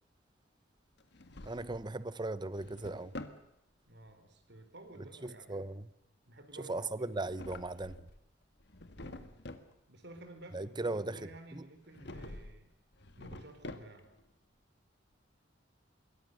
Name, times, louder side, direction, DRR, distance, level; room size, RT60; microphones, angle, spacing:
Drawer open or close, 1.0-2.0 2.4-3.4 7.1-8.2 8.6-9.7 11.9-12.6 12.9-14.2, left 2 dB, 65° left, 1.8 m, -48 dB
voice 1, 1.4-3.1 5.2-5.9 6.6-8.1 10.5-11.6, right 2 dB, 25° right, 0.9 m, -38 dB
voice 2, 3.9-5.7 6.3-7.3 9.0-9.4 9.9-12.7 13.2-14.1, right 2 dB, 65° right, 4.0 m, -53 dB
26.0 x 22.5 x 6.6 m
head